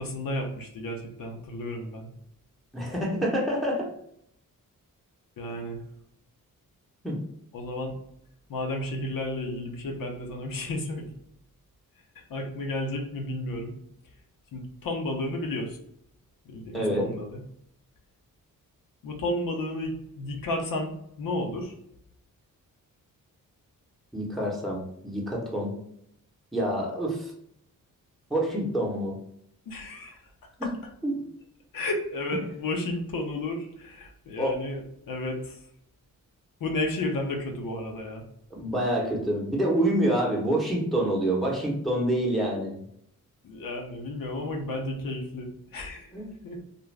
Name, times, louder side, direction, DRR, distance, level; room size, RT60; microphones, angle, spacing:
voice 1, 0.0-2.1 5.4-5.8 7.5-8.0 8.5-11.1 12.3-13.8 14.5-15.8 16.5-17.4 19.0-21.7 29.7-30.2 31.7-35.6 36.6-38.3 43.4-46.1 46.4-46.6, left 1 dB, 70° left, 2 dB, 0.7 m, -32 dB
voice 2, 2.7-3.9 7.0-7.2 16.7-17.1 24.1-25.7 26.5-27.3 28.3-29.2 30.6-30.7 31.0-31.2 34.4-34.6 38.5-42.8 46.1-46.3, right 1 dB, ahead, -3 dB, 0.9 m, -27 dB
2.4 x 2.2 x 3.2 m, 0.71 s
cardioid pair, 60°, 36 cm